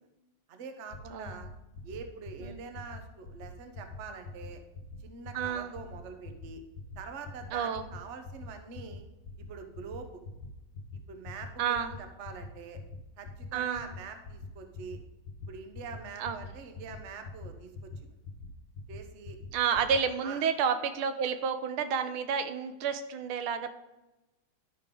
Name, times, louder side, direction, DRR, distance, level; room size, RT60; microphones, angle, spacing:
voice 1, 0.5-1.5 1.8-4.6 5.0-6.6 7.0-9.0 9.4-10.2 11.1-12.8 13.2-15.0 15.5-17.9 18.9-19.4 20.2-20.4, right 5 dB, 65° right, 6 dB, 0.7 m, -44 dB
sound 1, 0.9-1.0 1.2-1.5 1.7-2.0 2.2-2.5 2.7-3.0 3.2-3.5 3.7-4.0 4.2-4.5 4.7-5.0 5.2-5.5 5.7-6.0 6.2-6.5 6.7-7.0 7.2-7.5 7.7-8.0 8.2-8.5 8.7-9.0 9.2-9.5 9.7-10.0 10.2-10.5 10.7-11.0 11.2-11.5 11.7-12.0 12.2-12.5 12.7-13.0 13.2-13.5 13.7-14.0 14.2-14.5 14.7-15.0 15.2-15.5 15.7-16.0 16.2-16.5 16.7-17.0 17.2-17.5 17.7-18.0 18.2-18.5 18.7-19.0 19.2-19.5 19.7-20.0, left 5 dB, 65° left, 1.5 m, -42 dB
voice 2, 5.3-5.7 7.5-7.8 11.6-11.9 13.5-13.9 16.2-16.4 19.5-23.7, right 7 dB, 80° right, 9 dB, 1.5 m, -30 dB
11.5 x 5.2 x 3.7 m, 0.99 s
omnidirectional pair, 2.4 m